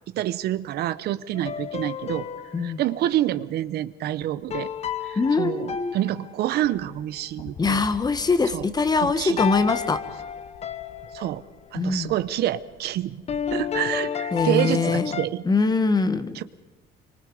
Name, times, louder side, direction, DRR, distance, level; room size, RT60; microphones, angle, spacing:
voice 1, 0.1-2.3 2.6-4.7 5.0-7.8 8.5-8.7 9.0-9.4 11.1-11.4 11.7-13.2 13.5-15.4 16.3-16.4, right 13 dB, 75° right, 14 dB, 1.0 m, -27 dB
sound 1, 1.3-2.9 4.5-6.7 9.4-11.4 13.3-15.3, left 8 dB, 40° left, 0.9 m, -31 dB
voice 2, 5.1-5.9 7.6-10.0 11.7-12.1 14.3-15.1 15.4-16.4, left 4 dB, 25° left, 12 dB, 1.5 m, -23 dB
sound 2, 6.6-13.8 14.9-15.0, left 6 dB, 70° left, 3.4 m, -47 dB
26.5 x 24.5 x 5.0 m, 1.1 s
cardioid pair, 110°, 17 cm